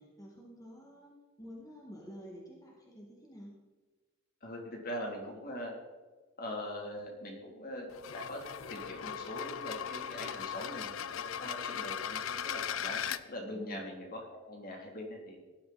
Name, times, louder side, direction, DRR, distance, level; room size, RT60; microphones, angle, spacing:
voice 1, 0.2-1.1 1.4-3.6 13.5-13.8, equal, 20° left, -3 dB, 2.3 m, -49 dB
voice 2, 4.4-5.7 6.4-7.9 8.1-8.4 8.7-15.4, left 1 dB, 45° left, 0 dB, 3.4 m, -42 dB
sound 1, 7.9-13.2, left 8 dB, 80° left, 0.6 m, -38 dB
17.5 x 12.0 x 4.3 m, 1.3 s
head